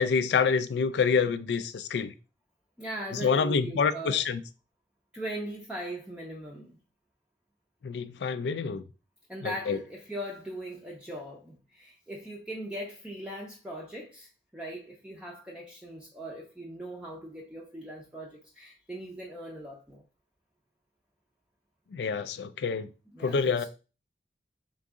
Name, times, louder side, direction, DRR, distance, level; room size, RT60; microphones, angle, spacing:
voice 1, 0.0-2.1 3.2-4.4 7.8-8.8 9.4-9.8 21.9-22.9 23.2-23.6, left 5 dB, 75° left, 0.4 m, -27 dB
voice 2, 2.8-4.2 5.1-6.8 9.3-20.0 23.1-23.6, right 1 dB, 5° right, 0.5 m, -40 dB
3.8 x 2.6 x 3.5 m
head